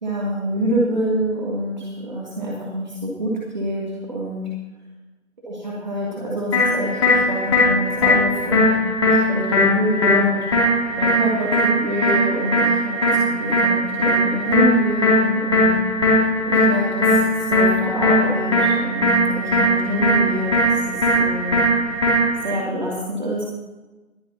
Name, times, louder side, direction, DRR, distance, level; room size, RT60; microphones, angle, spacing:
voice 1, 0.0-4.5 5.4-10.5 11.0-15.7 16.4-17.2 17.5-21.8 22.4-23.5, equal, 35° right, -5 dB, 2.6 m, -26 dB
sound 1, 6.5-22.5, left 1 dB, 20° left, 3.0 m, -19 dB
22.5 x 9.9 x 2.9 m, 1.1 s
figure-of-eight pair, 165°, 42 cm